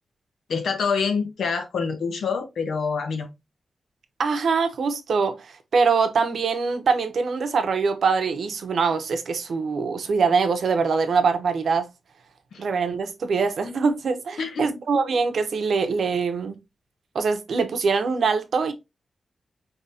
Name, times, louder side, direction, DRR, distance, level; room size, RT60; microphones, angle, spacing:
voice 1, 0.5-3.3 12.5-12.6 14.4-14.7, left 5 dB, 85° left, 1.0 m, -26 dB
voice 2, 4.2-11.9 12.6-16.6 17.1-18.7, right 5 dB, 75° right, 0.8 m, -23 dB
5.5 x 2.9 x 2.7 m
wide cardioid pair, 110°, 0 cm